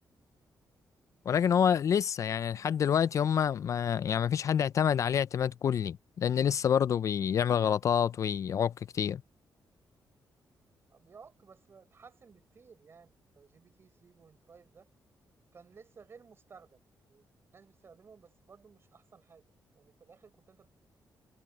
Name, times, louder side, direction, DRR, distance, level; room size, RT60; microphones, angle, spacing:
voice 1, 1.3-9.2, left 8 dB, 45° left, 0.3 m, -27 dB
voice 2, 10.9-14.9 15.5-16.8 17.1-17.3 17.5-20.7, right 5 dB, 35° right, 5.0 m, -57 dB
wide cardioid pair, 165°, 7 cm